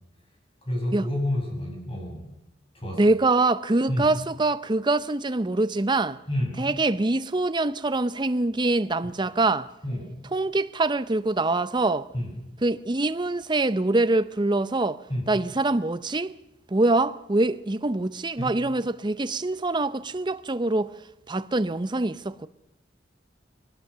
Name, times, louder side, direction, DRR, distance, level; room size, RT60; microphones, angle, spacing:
voice 1, 0.7-2.3 2.7-3.0 3.9-4.1 6.3-6.6 9.8-10.1 12.1-12.3 15.1-15.2 18.4-18.5, left 1 dB, 30° left, 7.8 m, -29 dB
voice 2, 2.9-6.2 6.6-9.7 10.3-12.1 12.6-16.3 16.7-20.9 21.3-22.5, right 2 dB, 25° right, 0.7 m, -24 dB
21.0 x 19.5 x 6.8 m
head